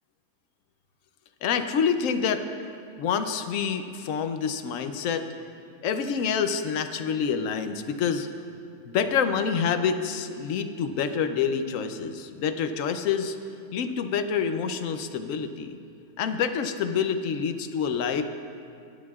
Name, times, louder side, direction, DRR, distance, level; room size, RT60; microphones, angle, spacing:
voice 1, 1.4-2.4 3.0-5.3 5.8-8.3 8.8-13.4 13.7-15.8 16.2-18.2, left 6 dB, 65° left, 8 dB, 0.9 m, -27 dB
18.5 x 10.5 x 2.4 m, 2.4 s
omnidirectional pair, 1.7 m